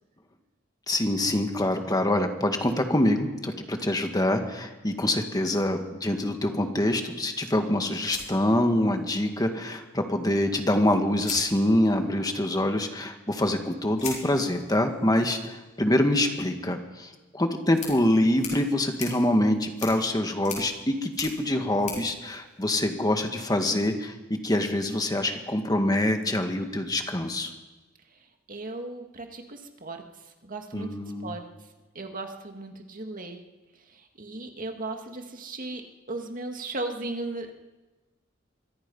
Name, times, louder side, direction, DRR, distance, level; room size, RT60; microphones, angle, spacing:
voice 1, 0.9-27.5 30.7-31.4, left 1 dB, 20° left, 5 dB, 2.0 m, -25 dB
sound 1, 8.1-9.2 10.5-10.6 11.1-12.2 14.0-23.2, left 5 dB, 40° left, 7.1 m, -42 dB
voice 2, 28.5-30.0 30.4-31.4 31.9-33.4 33.9-35.8 36.1-37.5, right 2 dB, 45° right, 4 dB, 2.1 m, -36 dB
24.5 x 24.0 x 5.6 m, 1.2 s
head